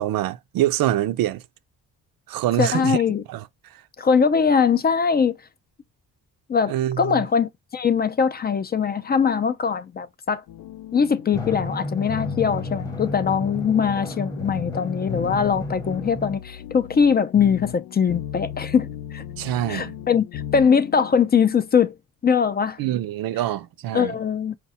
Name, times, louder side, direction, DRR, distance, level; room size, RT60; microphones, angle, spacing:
voice 1, 0.0-1.4 2.3-3.0 3.3-3.4 6.7-7.2 19.4-19.9 22.8-24.1, right 13 dB, 75° right, 0.5 m, -25 dB
voice 2, 2.6-3.2 4.0-5.4 6.5-10.4 10.9-19.2 19.7-21.9 22.2-22.8 23.9-24.6, left 6 dB, 30° left, 0.4 m, -21 dB
sound 1, 10.5-21.4, left 11 dB, 85° left, 0.5 m, -36 dB
Drum, 11.3-16.4, equal, 10° left, 1.0 m, -33 dB
4.7 x 2.2 x 4.1 m
cardioid pair, 105°, 35 cm